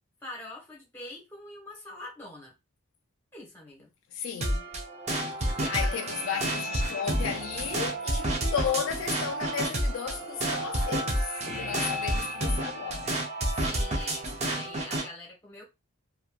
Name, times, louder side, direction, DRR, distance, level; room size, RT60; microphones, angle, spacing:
voice 1, 0.2-2.5 3.3-3.9 5.5-6.0 6.3-6.4 11.4-11.8 13.5-15.6, left 1 dB, 10° left, 1.1 m, -44 dB
voice 2, 4.1-4.6 5.4-13.2, left 7 dB, 65° left, 0.3 m, -34 dB
sound 1, 4.4-15.1, right 1 dB, 30° right, 0.6 m, -30 dB
sound 2, 5.5-8.7 9.8-13.1, equal, 55° right, 0.9 m, -49 dB
3.0 x 2.3 x 2.3 m
head